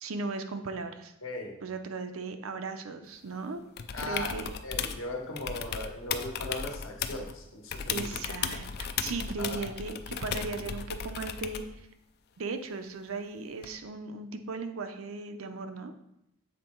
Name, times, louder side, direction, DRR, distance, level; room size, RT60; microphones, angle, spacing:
voice 1, 0.0-1.1 1.6-3.6 4.0-4.5 7.9-11.6 12.4-15.9, right 4 dB, 80° right, 8 dB, 0.6 m, -37 dB
voice 2, 1.2-1.6 3.9-4.3 4.6-8.0 9.4-9.7, left 1 dB, 75° left, 1 dB, 1.3 m, -38 dB
sound 1, 3.8-5.0 5.4-7.3 7.7-11.7 13.6-13.7, left 7 dB, 50° left, 0.4 m, -35 dB
7.5 x 3.8 x 4.5 m, 0.81 s
head